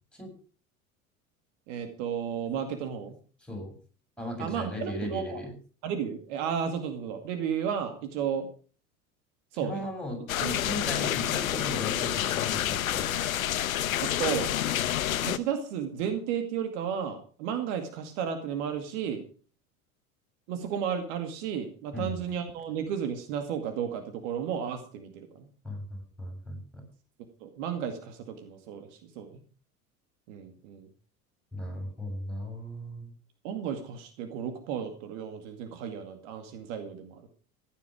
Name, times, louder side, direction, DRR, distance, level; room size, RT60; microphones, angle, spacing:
voice 1, 1.7-3.2 4.4-5.4 5.8-8.5 9.5-9.9 10.4-10.6 14.0-14.5 15.2-19.2 20.5-25.5 27.4-29.4 30.3-30.9 33.4-37.3, right 8 dB, 55° right, 6 dB, 2.3 m, -33 dB
voice 2, 4.2-5.5 9.6-13.2 21.9-22.2 25.6-26.8 31.5-33.1, left 1 dB, ahead, 1 dB, 7.7 m, -37 dB
sound 1, 10.3-15.4, left 11 dB, 70° left, 0.9 m, -28 dB
15.5 x 11.0 x 5.0 m, 0.40 s
figure-of-eight pair, 70°, 43 cm